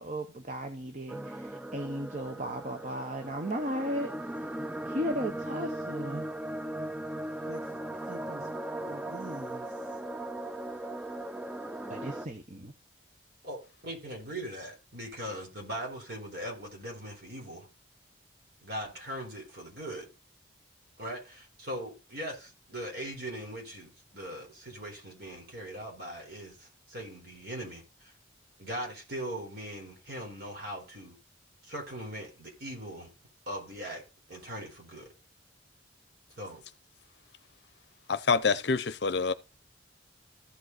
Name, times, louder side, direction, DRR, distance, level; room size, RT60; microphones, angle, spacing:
voice 1, 0.0-4.1 4.4-4.5 4.8-6.3 7.5-7.7 8.0-8.5 8.9-9.7 11.9-12.7, equal, 40° right, 1.0 m, -36 dB
sound 1, 1.1-12.3, right 1 dB, 5° right, 0.4 m, -38 dB
voice 2, 13.4-17.7 18.6-20.1 21.0-28.1 28.6-31.2 31.6-33.1 33.5-34.0 34.3-35.1 36.4-36.6, right 1 dB, 55° right, 4.1 m, -40 dB
voice 3, 38.1-39.3, left 4 dB, 60° left, 0.6 m, -26 dB
14.5 x 5.3 x 4.0 m
head